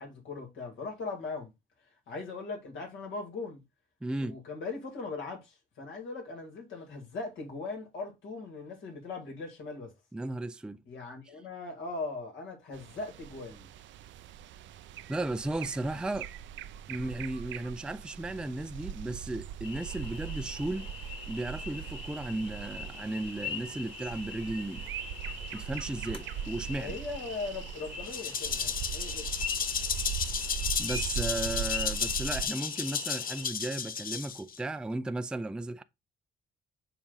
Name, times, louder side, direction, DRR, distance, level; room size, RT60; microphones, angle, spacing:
voice 1, 0.0-1.5 2.1-3.6 4.2-9.9 10.9-13.7 26.8-29.3, left 3 dB, 75° left, 2.1 m, -39 dB
voice 2, 4.0-4.4 10.1-10.8 15.1-16.3 16.9-20.9 21.3-24.8 25.5-27.0 30.8-35.8, right 2 dB, 5° right, 0.4 m, -35 dB
sound 1, 12.7-32.4, right 9 dB, 70° right, 0.5 m, -40 dB
sound 2, 19.6-33.5, left 4 dB, 25° left, 1.5 m, -43 dB
Rattle (instrument), 28.0-34.6, left 7 dB, 45° left, 0.7 m, -33 dB
7.1 x 2.5 x 5.5 m
cardioid pair, 90°, 20 cm